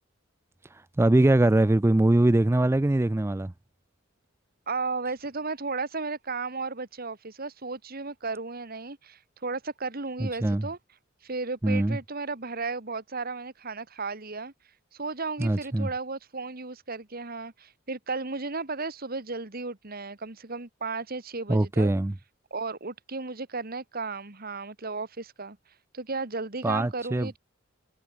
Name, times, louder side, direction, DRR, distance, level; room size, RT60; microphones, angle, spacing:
voice 1, 1.0-3.5 10.2-10.7 11.6-12.0 15.4-15.9 21.5-22.1 26.6-27.3, right 1 dB, 10° right, 0.4 m, -22 dB
voice 2, 4.7-10.8 11.2-14.5 14.9-21.9 22.5-25.6 25.9-27.4, right 3 dB, 45° right, 1.9 m, -34 dB
head